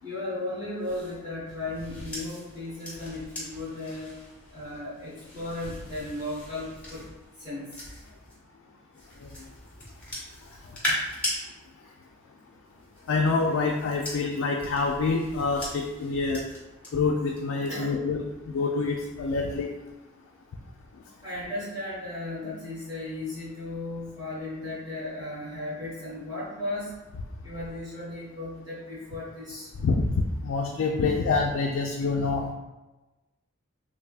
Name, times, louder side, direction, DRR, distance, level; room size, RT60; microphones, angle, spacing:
voice 1, 0.0-4.1 4.5-7.0 7.4-7.7 17.7-17.9 21.2-26.9 27.4-29.7, left 2 dB, 20° right, -10 dB, 1.1 m, -35 dB
sound 1, 0.8-8.4 8.9-11.4 12.6-16.9 17.3-17.6, equal, 5° left, 1.0 m, -39 dB
voice 2, 13.1-16.5 16.9-19.7 29.8-32.5, left 4 dB, 70° left, 1 dB, 0.3 m, -26 dB
3.4 x 3.3 x 2.4 m, 1.1 s
head